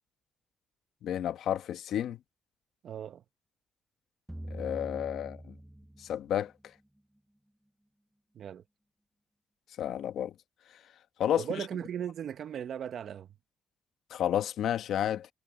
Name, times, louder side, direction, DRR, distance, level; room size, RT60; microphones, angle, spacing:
voice 1, 1.0-2.2 4.5-5.5 6.0-6.5 9.8-10.3 11.2-11.6 14.1-15.3, left 10 dB, 75° left, 1.1 m, -31 dB
voice 2, 2.8-3.2 8.3-8.6 11.4-13.3, right 9 dB, 65° right, 1.0 m, -37 dB
sound 1, 4.3-6.5, right 1 dB, 5° right, 0.7 m, -44 dB
cardioid pair, 90°, 0 cm